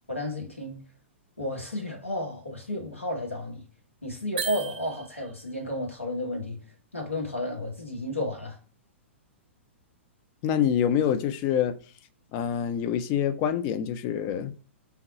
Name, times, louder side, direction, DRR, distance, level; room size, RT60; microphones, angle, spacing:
voice 1, 0.1-0.8 1.4-3.6 4.0-6.6 6.9-8.6, left 1 dB, 85° left, 1.3 m, -32 dB
sound 1, 4.4-5.5, right 7 dB, 50° right, 0.5 m, -36 dB
voice 2, 10.4-11.8 12.3-14.5, left 9 dB, 30° left, 0.4 m, -26 dB
3.5 x 2.2 x 4.1 m
figure-of-eight pair, 110°, 7 cm